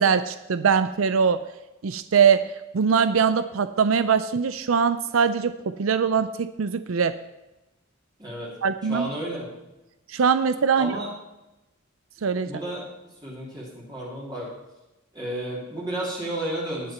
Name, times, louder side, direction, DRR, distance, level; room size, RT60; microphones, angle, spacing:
voice 1, 0.0-1.5 1.8-7.2 8.6-9.1 10.1-11.0 12.2-12.5, right 6 dB, 75° right, 11 dB, 0.5 m, -22 dB
voice 2, 8.2-8.5 8.8-9.5 10.8-11.1 12.4-12.9 13.2-14.5 15.1-16.9, right 1 dB, 20° right, -5 dB, 3.0 m, -32 dB
19.0 x 6.7 x 4.3 m, 0.98 s
head